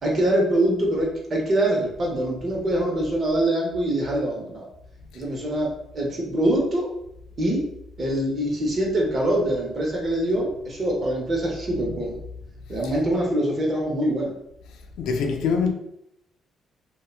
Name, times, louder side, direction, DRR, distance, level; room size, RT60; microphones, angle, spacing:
voice 1, 0.0-4.7 5.1-6.9 7.4-7.6 8.0-12.1 12.7-14.3, right 1 dB, 45° right, 0.9 m, -24 dB
voice 2, 15.0-15.7, left 5 dB, 85° left, 0.3 m, -24 dB
2.7 x 2.2 x 2.4 m
cardioid pair, 90°, 0 cm